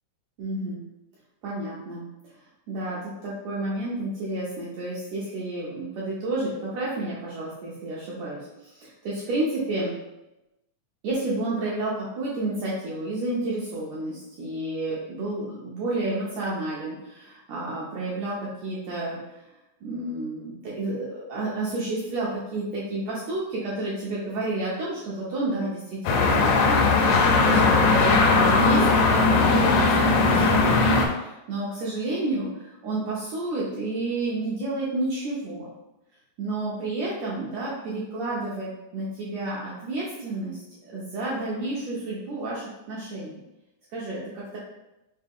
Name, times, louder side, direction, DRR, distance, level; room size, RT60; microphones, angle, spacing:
voice 1, 0.4-0.8 1.4-2.1 2.7-10.0 11.0-19.5 19.8-26.9 27.4-30.8 31.1-35.7 36.4-43.4 43.9-44.6, right 2 dB, 80° right, -6 dB, 1.5 m, -30 dB
sound 1, 26.0-31.1, left 3 dB, 80° left, 1.8 m, -19 dB
5.4 x 2.2 x 3.5 m, 0.95 s
omnidirectional pair, 4.0 m